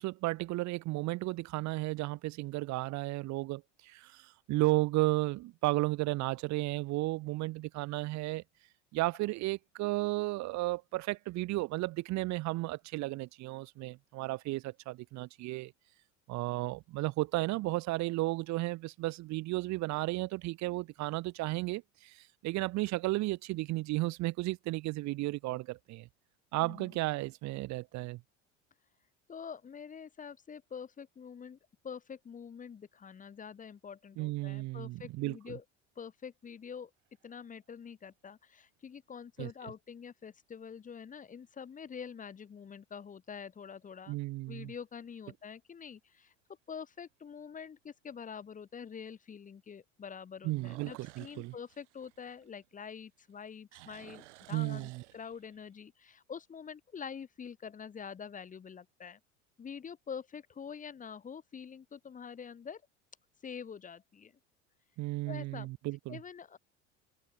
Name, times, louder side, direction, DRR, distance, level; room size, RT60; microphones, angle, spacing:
voice 1, 0.0-8.4 8.9-15.7 16.3-26.1 26.5-28.2 34.2-35.5 39.4-39.5 44.1-44.7 50.4-51.5 54.5-55.0 65.0-66.2, right 20 dB, 50° right, 0.8 m, -34 dB
voice 2, 26.6-27.0 29.3-31.6 31.8-35.6 36.0-36.9 37.2-44.2 44.5-46.3 46.7-59.2 59.6-62.8 63.4-64.3 65.3-65.7 66.1-66.6, left 6 dB, 20° left, 0.8 m, -46 dB
sound 1, 36.8-37.5 38.1-38.2 43.4-43.9 44.4-44.5 45.0-45.1 45.4-45.5 47.0-47.1 50.4-53.0 53.3-55.7, right 20 dB, 75° right, 1.8 m, -55 dB
hypercardioid pair, 80°, 36 cm